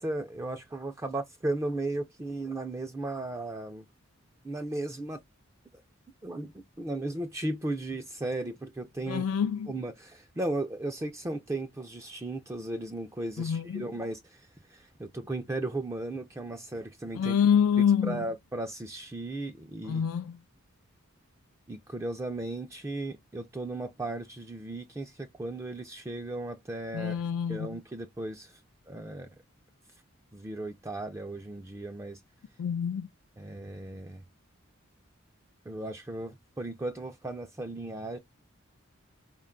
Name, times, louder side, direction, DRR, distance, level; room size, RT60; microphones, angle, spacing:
voice 1, 0.0-3.8 4.4-5.2 6.2-9.3 9.7-17.4 17.8-20.1 21.7-27.2 27.5-28.6 28.9-29.3 30.3-32.2 33.4-34.2 35.7-38.2, right 2 dB, 15° right, 0.3 m, -36 dB
voice 2, 9.1-9.7 13.4-13.8 17.2-18.2 19.9-20.4 26.9-27.7 32.6-33.1, left 8 dB, 80° left, 0.3 m, -26 dB
4.5 x 2.2 x 3.6 m
head